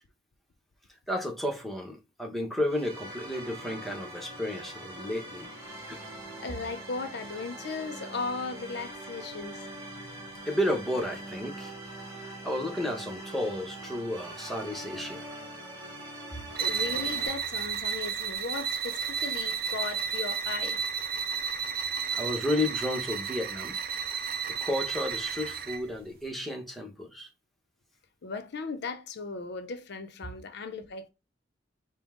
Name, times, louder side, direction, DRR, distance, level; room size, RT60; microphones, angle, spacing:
voice 1, 1.1-5.5 5.9-6.0 10.5-11.7 12.1-15.3 22.2-23.8 24.6-27.3, left 1 dB, ahead, 0.9 m, -32 dB
sound 1, 2.6-17.3, right 1 dB, 20° right, 2.7 m, -43 dB
voice 2, 6.4-9.6 16.6-20.8 28.2-31.1, left 4 dB, 60° left, 0.5 m, -37 dB
sound 2, 16.5-25.9, right 7 dB, 50° right, 0.5 m, -32 dB
5.2 x 2.1 x 3.6 m
head